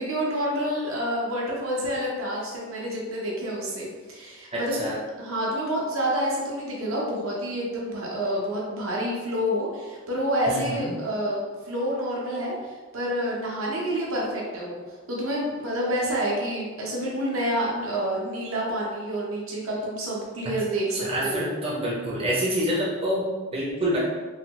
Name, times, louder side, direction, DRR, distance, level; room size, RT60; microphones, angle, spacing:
voice 1, 0.0-4.8 5.2-14.8 15.1-21.5, equal, 75° right, -4 dB, 0.7 m, -28 dB
voice 2, 4.5-5.0 10.5-10.9 20.4-20.5 20.9-24.0, equal, 25° right, -6 dB, 0.6 m, -27 dB
3.2 x 2.3 x 2.8 m, 1.4 s
head